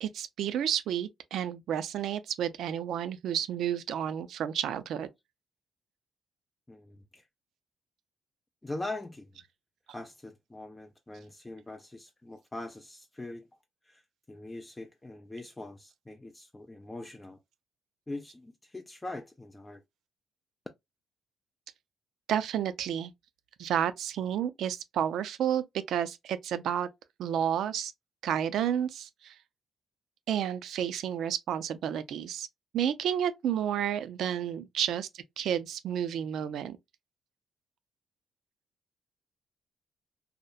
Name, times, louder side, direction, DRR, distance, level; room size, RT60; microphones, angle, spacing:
voice 1, 0.0-5.1 22.3-23.1 23.6-26.9 27.2-27.9 28.2-29.3 30.3-32.5 32.7-35.1 35.4-36.8, right 9 dB, 75° right, 0.3 m, -31 dB
voice 2, 6.7-7.3 8.6-9.3 9.9-13.5 13.8-14.0 14.3-17.4 18.1-19.8, left 2 dB, 15° left, 0.3 m, -42 dB
2.7 x 2.1 x 2.3 m
cardioid pair, 90°, 0 cm